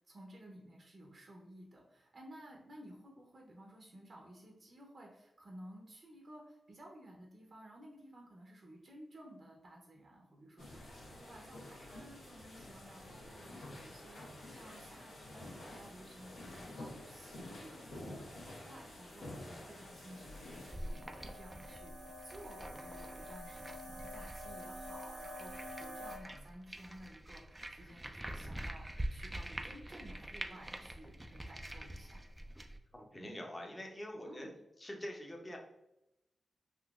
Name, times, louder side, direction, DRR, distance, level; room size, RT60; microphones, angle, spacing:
voice 1, 0.0-32.2 34.2-34.5, right 1 dB, 55° right, -1 dB, 0.7 m, -55 dB
sound 1, 10.6-20.7, left 1 dB, 75° left, 1.2 m, -50 dB
sound 2, 19.7-26.2, equal, 80° right, 1.2 m, -49 dB
sound 3, 20.4-32.8, right 1 dB, 15° right, 0.3 m, -46 dB
voice 2, 32.9-34.5 34.8-35.6, equal, 20° left, 1 dB, 0.7 m, -45 dB
3.7 x 2.6 x 2.4 m, 0.88 s
cardioid pair, 80°, 0 cm